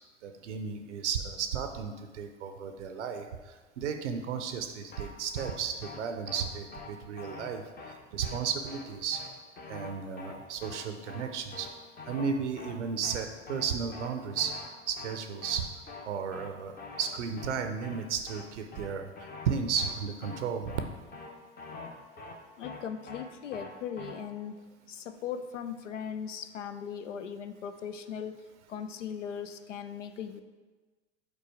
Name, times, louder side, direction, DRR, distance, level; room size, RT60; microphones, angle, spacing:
voice 1, 0.2-3.3 3.8-7.6 8.1-9.2 9.7-11.7 12.1-14.5 14.9-15.7 16.1-16.7 17.0-19.1 19.5-20.8, right 6 dB, 75° right, 6 dB, 0.6 m, -33 dB
sound 1, 4.9-5.1 5.4-5.5 5.8-6.0 6.3-6.4 6.7-6.9 7.2-7.5 7.8-7.9 8.2-8.4 8.7-8.8 9.1-9.3 9.6-9.9 10.2-10.3 10.6-10.8 11.1-11.2 11.5-11.7 12.0-12.3 12.6-12.7 13.0-13.2 13.5-13.6 13.9-14.1 14.4-14.7 15.0-15.1 15.4-15.6 15.9-16.0 16.3-16.5 16.8-17.1 17.4-17.5 17.8-18.0 18.3-18.4 18.7-18.9 19.2-19.5 19.8-19.9 20.2-20.4 20.7-20.8 21.1-21.3 21.6-21.9 22.2-22.3 22.6-22.8 23.1-23.2 23.5-23.7 24.0-24.1, left 4 dB, 25° left, 0.9 m, -44 dB
voice 2, 22.6-28.4 28.7-30.4, left 7 dB, 80° left, 10 dB, 0.5 m, -39 dB
5.2 x 4.1 x 4.7 m, 1.3 s
figure-of-eight pair, 80°, 36 cm